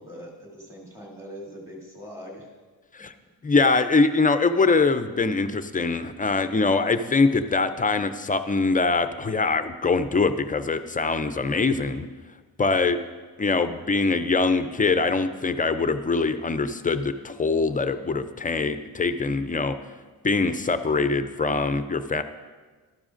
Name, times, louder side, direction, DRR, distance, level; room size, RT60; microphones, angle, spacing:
voice 1, 0.0-2.5, equal, 10° right, -4 dB, 2.7 m, -42 dB
voice 2, 3.4-12.1 12.6-13.0 13.4-19.8 20.2-22.2, left 3 dB, 25° left, 10 dB, 0.4 m, -23 dB
12.0 x 12.0 x 2.5 m, 1.4 s
wide cardioid pair, 140°, 38 cm